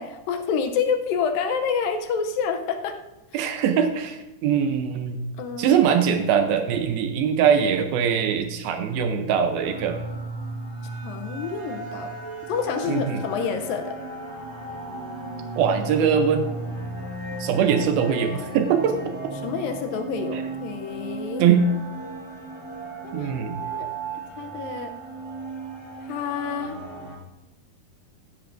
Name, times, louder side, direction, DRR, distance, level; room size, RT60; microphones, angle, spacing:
voice 1, 0.0-3.0 3.3-3.5 5.4-5.8 11.0-12.1 12.5-13.9 19.4-21.5 23.0-23.9 24.4-24.9 26.1-26.8, left 6 dB, 75° left, 6 dB, 2.3 m, -28 dB
voice 2, 3.3-5.2 5.6-10.0 12.8-13.2 15.6-16.5 17.4-19.1 20.3-20.4 21.4-21.7 23.1-23.6, right 7 dB, 80° right, 6 dB, 2.5 m, -22 dB
sound 1, 9.6-27.2, right 2 dB, 15° right, 1.7 m, -35 dB
15.5 x 10.5 x 2.6 m, 1.0 s
omnidirectional pair, 4.4 m